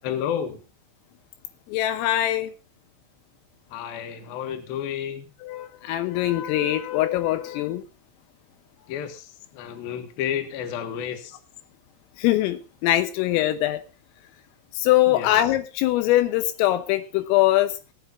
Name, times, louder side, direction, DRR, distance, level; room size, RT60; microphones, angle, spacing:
voice 1, 0.0-0.6 3.7-5.3 8.9-11.4 15.1-15.4, left 9 dB, 60° left, 7 dB, 2.9 m, -31 dB
voice 2, 1.7-2.5 5.4-7.8 12.2-13.8 14.8-17.7, left 14 dB, 85° left, 11 dB, 3.6 m, -22 dB
17.0 x 14.5 x 2.6 m, 0.32 s
omnidirectional pair, 5.9 m